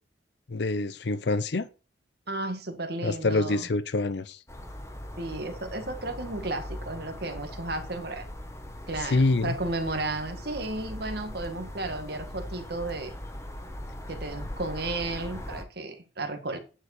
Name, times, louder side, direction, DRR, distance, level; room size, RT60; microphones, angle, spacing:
voice 1, 0.5-1.7 3.0-4.4 9.0-9.6, left 2 dB, 60° left, 0.6 m, -26 dB
voice 2, 2.3-3.7 5.2-8.2 8.9-13.2 14.1-16.6, right 2 dB, 55° right, 1.7 m, -33 dB
sound 1, 4.5-15.6, left 1 dB, 15° left, 1.1 m, -40 dB
10.0 x 4.8 x 4.9 m
head